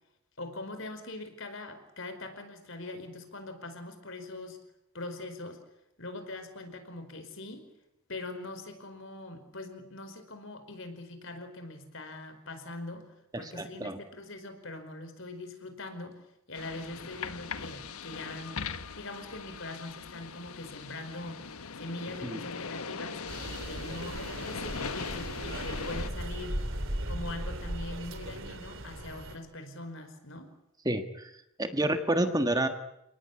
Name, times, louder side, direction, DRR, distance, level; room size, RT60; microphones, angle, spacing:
voice 1, 0.4-4.6 4.9-5.6 6.0-7.6 8.1-13.1 13.3-16.2 16.5-18.6 18.9-21.5 21.8-23.2 23.7-26.6 27.1-30.5, left 2 dB, 60° left, 8 dB, 5.0 m, -42 dB
voice 2, 13.3-14.0 22.2-22.4 30.8-31.3 31.6-32.7, right 1 dB, 15° right, 8 dB, 1.5 m, -29 dB
sound 1, 16.5-26.1, left 5 dB, 85° left, 1.3 m, -40 dB
sound 2, 23.3-29.4, right 1 dB, 60° right, 3.4 m, -37 dB
29.5 x 18.5 x 9.8 m, 0.85 s
head